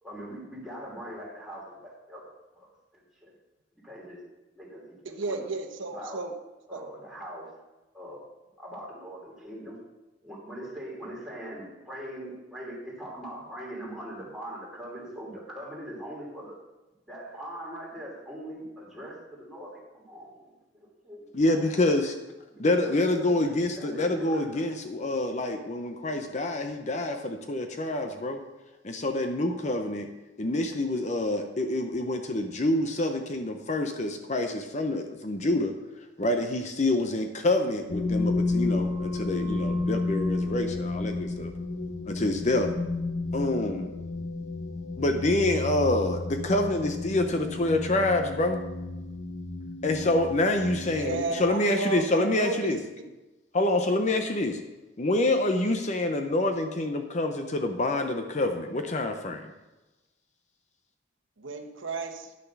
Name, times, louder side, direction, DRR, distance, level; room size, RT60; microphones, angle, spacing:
voice 1, 0.0-2.2 2.5-2.7 3.2-3.3 3.8-4.2 4.5-5.5 5.8-6.2 6.7-7.5 7.9-8.2 8.6-9.8 10.2-16.6 17.1-20.5 20.7-21.8 22.5-24.7, equal, 5° right, -5 dB, 3.1 m, -41 dB
voice 2, 5.0-6.3 6.7-6.8 50.9-53.0 61.4-62.3, right 3 dB, 90° right, 5 dB, 1.0 m, -33 dB
voice 3, 21.3-22.1 22.6-28.4 28.8-30.1 30.4-35.7 36.2-41.5 42.1-42.7 43.3-43.9 45.0-48.6 49.8-52.8 53.5-54.6 55.0-59.4, left 2 dB, 40° left, 5 dB, 0.7 m, -27 dB
sound 1, 37.9-51.5, left 3 dB, 70° left, 0.9 m, -32 dB
10.0 x 6.7 x 6.0 m, 1.1 s
head